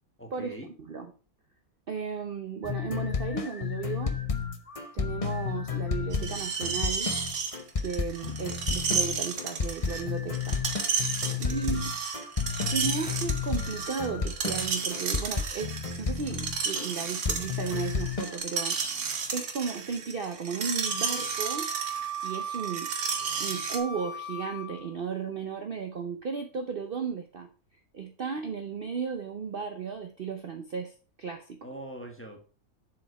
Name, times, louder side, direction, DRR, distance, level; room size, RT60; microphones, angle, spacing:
voice 1, 0.2-0.7 11.3-11.8 31.6-32.4, right 1 dB, 10° left, 3 dB, 1.1 m, -43 dB
voice 2, 1.9-4.2 4.9-7.1 7.8-10.6 11.4-11.9 12.7-18.8 19.3-21.7 22.2-22.9 23.4-27.5 27.9-31.6, right 6 dB, 50° right, 5 dB, 0.8 m, -35 dB
sound 1, 2.6-16.9 17.2-18.4, left 6 dB, 35° left, 0.6 m, -32 dB
Screech, 6.1-23.8, right 5 dB, 90° right, 1.6 m, -33 dB
Wind instrument woodwind instrument, 20.8-24.9, right 5 dB, 80° left, 1.6 m, -37 dB
7.2 x 5.0 x 4.7 m, 0.37 s
omnidirectional pair, 1.5 m